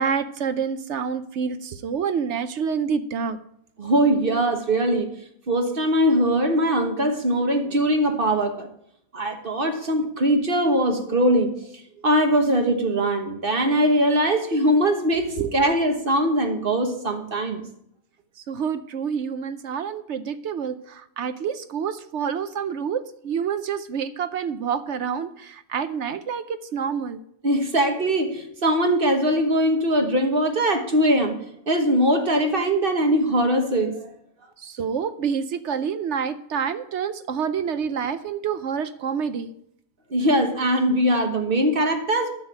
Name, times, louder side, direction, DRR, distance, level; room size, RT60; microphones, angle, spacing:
voice 1, 0.0-3.4 15.4-15.5 18.5-27.2 34.6-39.5, right 7 dB, 60° right, 12 dB, 0.8 m, -28 dB
voice 2, 3.8-5.1 5.5-8.7 9.1-11.5 12.0-17.6 27.4-31.4 31.7-34.1 40.1-42.3, right 1 dB, 40° right, 4 dB, 1.4 m, -21 dB
9.5 x 7.3 x 7.3 m, 0.72 s
omnidirectional pair, 1.5 m